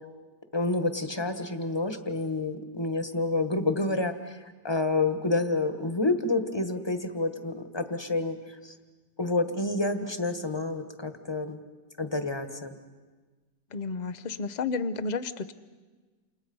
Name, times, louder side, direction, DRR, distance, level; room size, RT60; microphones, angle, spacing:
voice 1, 0.5-8.7 9.2-11.6 12.0-12.7, left 2 dB, 15° left, 8 dB, 1.4 m, -29 dB
voice 2, 13.7-15.5, left 4 dB, 40° left, 13 dB, 0.6 m, -31 dB
29.0 x 28.5 x 5.5 m, 1.4 s
omnidirectional pair, 1.8 m